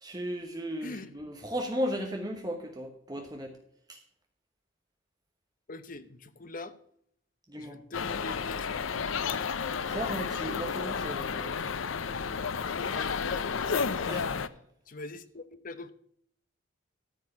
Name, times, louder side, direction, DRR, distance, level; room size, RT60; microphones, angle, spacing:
voice 1, 0.0-3.5 3.9-4.0 7.5-7.8 9.9-11.5 14.1-14.4, equal, 20° right, 3 dB, 1.0 m, -35 dB
voice 2, 0.8-1.3 5.7-6.8 7.6-8.7 12.8-13.8 14.9-15.9, left 2 dB, 45° left, 12 dB, 0.8 m, -43 dB
sound 1, 7.9-14.5, left 6 dB, 85° left, 0.6 m, -32 dB
13.5 x 4.7 x 8.6 m, 0.67 s
head